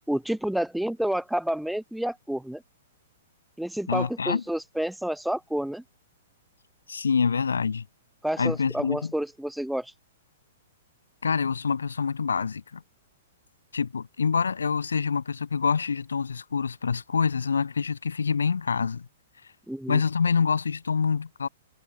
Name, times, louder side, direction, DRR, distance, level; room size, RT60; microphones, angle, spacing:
voice 1, 0.1-2.6 3.6-5.8 8.2-9.9 19.7-20.0, right 1 dB, ahead, 1.8 m, -29 dB
voice 2, 3.9-4.4 6.9-7.8 8.4-9.1 11.2-12.8 13.7-19.1 19.9-21.5, left 5 dB, 70° left, 1.1 m, -26 dB
figure-of-eight pair, 110°, 0 cm